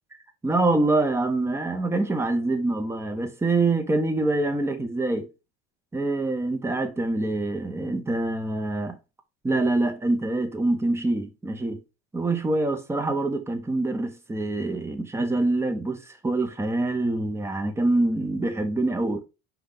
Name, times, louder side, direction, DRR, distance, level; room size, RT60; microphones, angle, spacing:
voice 1, 0.4-5.3 5.9-9.0 9.4-11.8 12.1-19.2, right 2 dB, 10° right, 0.7 m, -25 dB
5.2 x 2.3 x 3.7 m
supercardioid pair, 110°, 29 cm